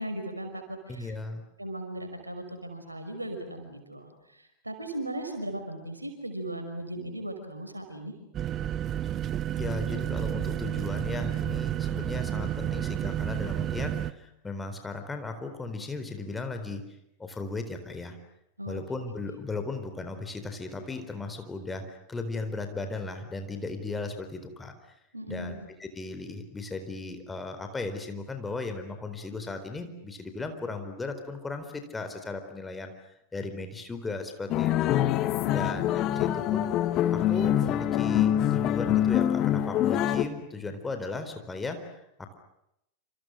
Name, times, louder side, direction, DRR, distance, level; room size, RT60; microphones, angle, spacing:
voice 1, 0.0-1.1 1.6-8.1 18.6-18.8 25.1-25.6 35.4-35.8 36.1-36.3, right 1 dB, 85° right, 6 dB, 5.5 m, -37 dB
voice 2, 0.9-1.4 9.6-16.8 17.2-18.2 18.7-24.7 25.3-32.9 33.3-35.0 35.5-36.6 37.1-42.4, left 3 dB, 10° left, 7 dB, 4.2 m, -36 dB
sound 1, 8.3-14.1, right 11 dB, 30° right, 0.9 m, -31 dB
sound 2, 34.5-40.2, left 11 dB, 35° left, 1.6 m, -25 dB
28.0 x 28.0 x 6.5 m, 0.80 s
figure-of-eight pair, 90°, 0 cm